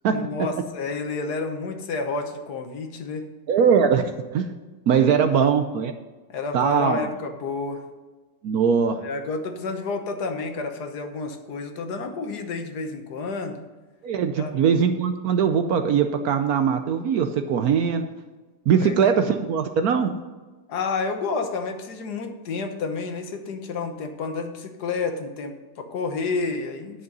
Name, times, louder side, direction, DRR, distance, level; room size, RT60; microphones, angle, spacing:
voice 1, 0.1-3.3 4.9-5.5 6.3-7.8 9.0-13.6 14.4-14.5 18.7-19.0 20.7-27.0, left 4 dB, 65° left, 6 dB, 1.5 m, -30 dB
voice 2, 3.5-4.0 4.3-4.6 4.9-5.9 6.5-7.0 8.4-9.0 14.0-18.1 18.7-20.1, right 7 dB, 70° right, 8 dB, 1.0 m, -21 dB
10.5 x 6.6 x 5.4 m, 1.2 s
omnidirectional pair, 2.0 m